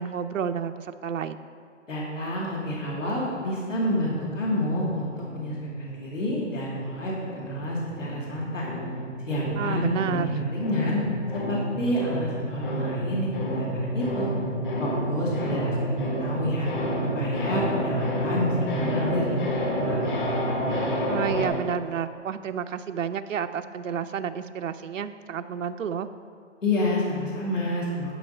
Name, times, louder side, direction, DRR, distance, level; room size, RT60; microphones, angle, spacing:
voice 1, 0.0-1.5 9.6-10.4 21.1-26.1, right 8 dB, 90° right, 9 dB, 0.6 m, -30 dB
voice 2, 1.9-8.7 9.3-11.0 11.3-14.3 14.8-16.7 17.1-20.1 26.6-28.2, left 1 dB, 90° left, -4 dB, 2.4 m, -29 dB
sound 1, 3.8-6.3 6.6-21.5, equal, 40° left, 1.4 m, -30 dB
11.0 x 5.0 x 5.5 m, 2.3 s
hypercardioid pair, 170°, 37 cm